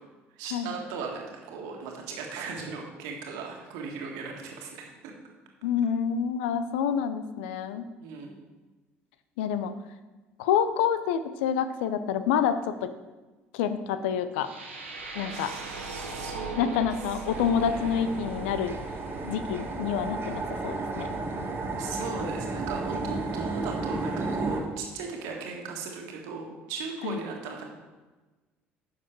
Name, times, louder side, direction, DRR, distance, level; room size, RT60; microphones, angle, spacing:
voice 1, 0.4-5.1 8.0-8.4 15.3-16.7 17.3-18.0 21.4-21.5 21.8-27.6, right 4 dB, 65° right, 1 dB, 1.7 m, -38 dB
voice 2, 5.6-7.8 9.4-9.7 10.4-12.9 13.5-14.5 15.1-15.5 16.5-18.7 19.2-21.1 27.0-27.2, left 8 dB, 70° left, 11 dB, 0.6 m, -27 dB
sound 1, 14.4-22.4, right 3 dB, 85° right, 1.2 m, -41 dB
sound 2, 17.3-24.6, right 3 dB, 35° right, 1.7 m, -33 dB
10.0 x 6.6 x 4.6 m, 1.2 s
figure-of-eight pair, 55°, 6 cm